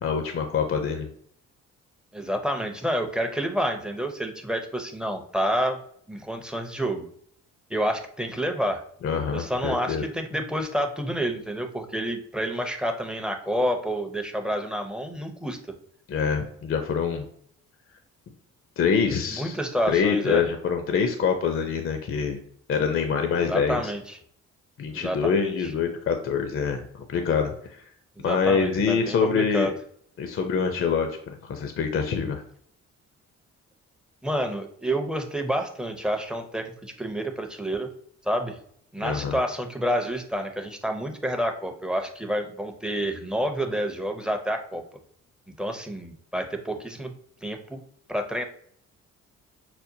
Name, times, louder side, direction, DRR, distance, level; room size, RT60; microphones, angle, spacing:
voice 1, 0.0-1.1 9.0-10.0 16.1-17.3 18.8-19.6 19.9-22.4 22.7-23.8 24.8-27.8 28.2-29.7 30.2-32.4 39.0-39.4, left 6 dB, 45° left, 6 dB, 0.6 m, -25 dB
voice 2, 2.1-5.8 6.1-7.1 7.7-8.8 9.3-15.6 19.3-20.4 23.5-24.2 24.9-25.5 28.2-29.7 34.2-37.9 38.2-38.6 38.9-44.8 45.6-47.1 47.4-47.8 48.1-48.4, equal, 5° right, 5 dB, 0.6 m, -29 dB
5.8 x 2.1 x 2.6 m, 0.63 s
cardioid pair, 90°, 30 cm